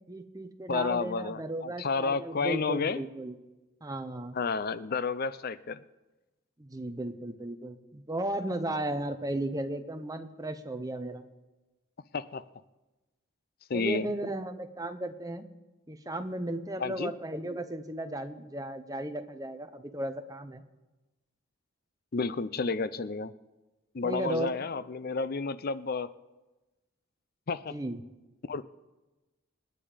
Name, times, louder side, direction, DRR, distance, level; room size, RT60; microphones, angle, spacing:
voice 1, 0.1-3.4 3.8-4.4 6.6-11.2 13.7-15.4 15.9-20.6 24.0-24.5 27.7-28.0, right 1 dB, 15° right, 8 dB, 0.9 m, -35 dB
voice 2, 0.7-3.0 4.3-5.8 12.1-12.4 13.7-14.1 16.8-17.1 22.1-23.3 23.9-26.1 27.5-27.7 28.5-28.6, left 4 dB, 45° left, 16 dB, 0.5 m, -31 dB
27.0 x 9.2 x 5.1 m, 1.1 s
head